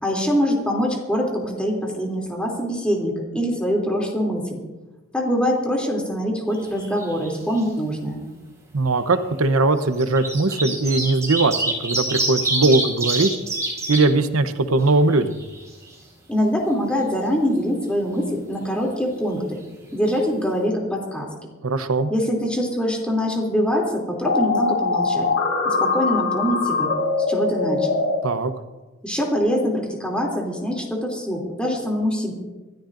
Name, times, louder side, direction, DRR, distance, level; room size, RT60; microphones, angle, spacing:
voice 1, 0.0-4.6 5.1-8.3 16.3-19.6 19.9-21.3 22.1-25.3 25.6-26.9 27.3-27.9 29.0-32.3, equal, 5° left, -1 dB, 3.0 m, -24 dB
sound 1, 6.5-7.3 7.5-7.6 8.8-8.9 9.8-14.0 14.5-14.6 14.8-15.9 19.8-19.9 20.1-20.2, right 2 dB, 15° right, 4.9 m, -26 dB
voice 2, 8.7-13.3 13.9-15.4 21.6-22.1 28.2-28.5, right 3 dB, 90° right, 9 dB, 0.9 m, -20 dB
sound 2, 24.3-28.2, left 4 dB, 85° left, 4.8 m, -22 dB
26.0 x 13.0 x 2.6 m, 1.1 s
head